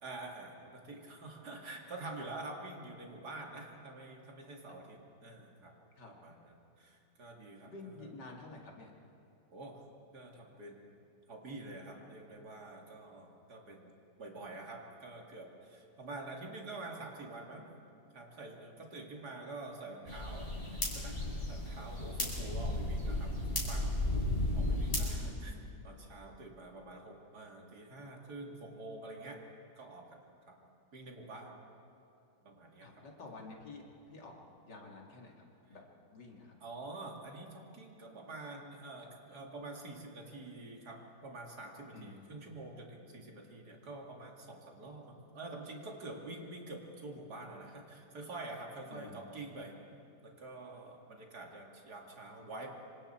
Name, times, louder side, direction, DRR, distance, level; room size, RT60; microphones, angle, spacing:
voice 1, 0.0-5.7 6.1-8.1 9.5-9.8 10.1-10.8 11.3-13.9 14.2-17.7 18.1-21.2 21.5-23.9 24.5-29.4 29.8-30.1 30.5-30.6 30.9-31.5 32.4-33.0 35.7-35.8 36.6-49.7 50.2-52.7, right 2 dB, 65° right, 0 dB, 2.9 m, -47 dB
voice 2, 7.6-8.9 25.2-25.3 32.8-34.4 34.6-35.3 35.7-35.8 36.1-36.5 41.9-42.4 48.9-49.5, left 3 dB, 80° left, 0 dB, 3.0 m, -50 dB
sound 1, 20.1-25.1, left 1 dB, 30° left, 5.0 m, -34 dB
26.0 x 25.5 x 4.5 m, 2.6 s
omnidirectional pair, 1.8 m